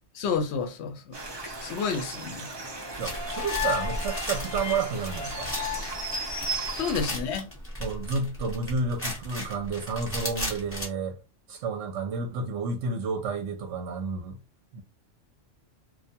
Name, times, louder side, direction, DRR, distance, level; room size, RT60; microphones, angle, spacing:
voice 1, 0.2-1.0 1.6-2.5 6.7-7.5, left 5 dB, 70° left, 0.8 m, -29 dB
sound 1, 1.1-7.1, right 3 dB, 35° right, 0.4 m, -36 dB
sound 2, 2.7-6.9, left 10 dB, 50° left, 0.3 m, -36 dB
sound 3, 3.0-10.9, equal, 15° left, 0.8 m, -36 dB
voice 2, 3.0-5.5 7.8-11.2 11.5-14.4 14.7-14.8, right 4 dB, 80° right, 0.9 m, -31 dB
2.3 x 2.1 x 2.7 m
omnidirectional pair, 1.2 m